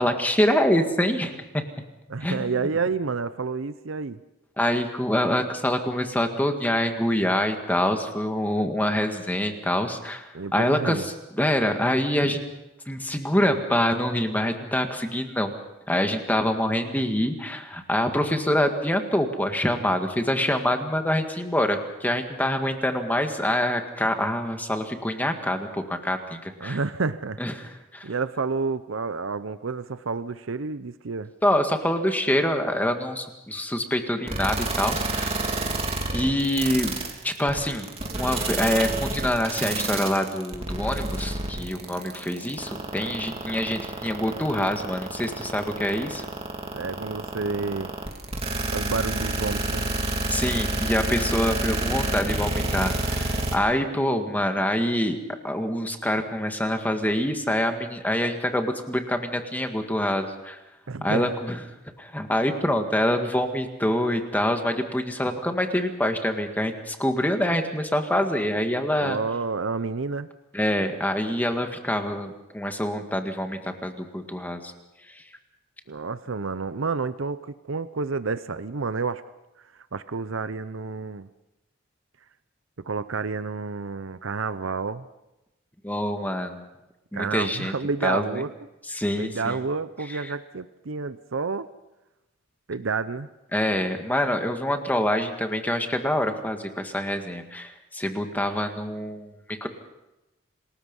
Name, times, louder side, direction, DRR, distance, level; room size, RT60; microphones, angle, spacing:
voice 1, 0.0-1.6 2.2-2.5 4.6-12.4 12.9-15.5 15.9-26.8 27.4-28.1 31.4-35.4 36.1-46.2 50.3-55.2 55.4-60.6 61.0-61.6 62.0-69.2 70.5-74.7 75.1-75.2 85.8-86.6 87.1-87.7 88.0-88.4 88.9-89.6 90.1-90.3 93.5-99.7, left 1 dB, 10° left, 5 dB, 1.8 m, -26 dB
voice 2, 2.1-4.2 10.3-11.1 26.6-27.4 28.0-31.3 46.7-47.9 48.7-49.9 60.9-61.3 69.0-70.3 75.9-79.2 79.9-81.3 82.8-85.1 87.1-88.5 89.1-91.7 92.7-93.3, right 4 dB, 65° right, 13 dB, 0.7 m, -29 dB
sound 1, 34.3-53.6, right 2 dB, 30° right, 3.1 m, -28 dB
28.0 x 20.0 x 5.5 m, 0.96 s
head